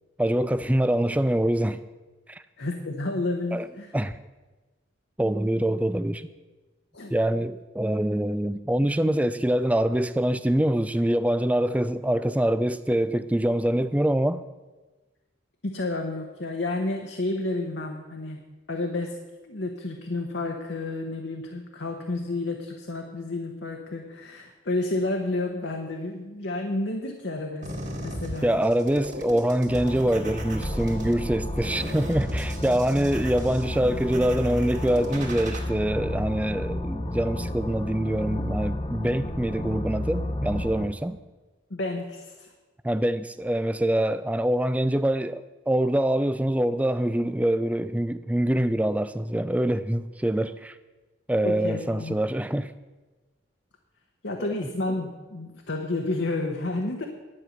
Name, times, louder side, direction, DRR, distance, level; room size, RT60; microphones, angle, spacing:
voice 1, 0.2-1.8 2.3-2.4 3.5-3.7 3.9-4.2 5.2-6.3 7.1-14.4 28.4-41.2 42.8-50.8 51.3-52.7, right 1 dB, 5° right, 0.3 m, -24 dB
voice 2, 2.6-4.0 6.9-7.1 15.6-18.4 18.7-19.2 19.4-27.7 28.0-28.5 41.7-42.5 51.4-52.1 54.2-57.0, left 2 dB, 65° left, 1.1 m, -30 dB
sound 1, 27.6-35.6, equal, 40° right, 2.2 m, -37 dB
sound 2, 29.7-40.9, left 1 dB, 25° left, 0.8 m, -32 dB
11.0 x 9.3 x 6.5 m
head